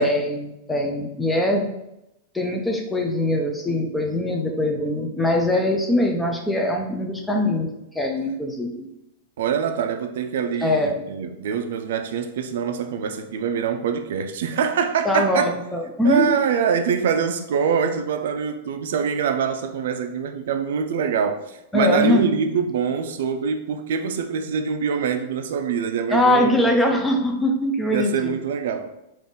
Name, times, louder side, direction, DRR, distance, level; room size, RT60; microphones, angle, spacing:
voice 1, 0.0-1.7 2.3-7.7 7.9-8.9 10.6-11.0 15.1-16.3 21.7-22.3 26.1-28.3, left 1 dB, 5° left, 0.4 m, -22 dB
voice 2, 9.4-15.5 16.0-26.6 26.9-27.0 27.9-28.9, right 7 dB, 65° right, 0.4 m, -24 dB
3.9 x 2.5 x 3.6 m
supercardioid pair, 175°, 0 cm